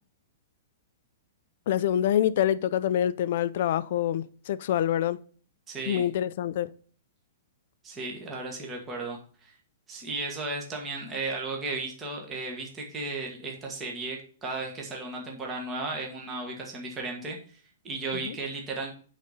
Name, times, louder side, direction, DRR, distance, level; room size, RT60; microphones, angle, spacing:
voice 1, 1.7-5.2 5.9-6.7 18.3-18.4, left 11 dB, 45° left, 0.5 m, -26 dB
voice 2, 5.7-6.1 7.8-9.5 9.9-18.9, right 3 dB, 10° right, 1.4 m, -35 dB
9.6 x 4.1 x 5.0 m
hypercardioid pair, 175°, 0 cm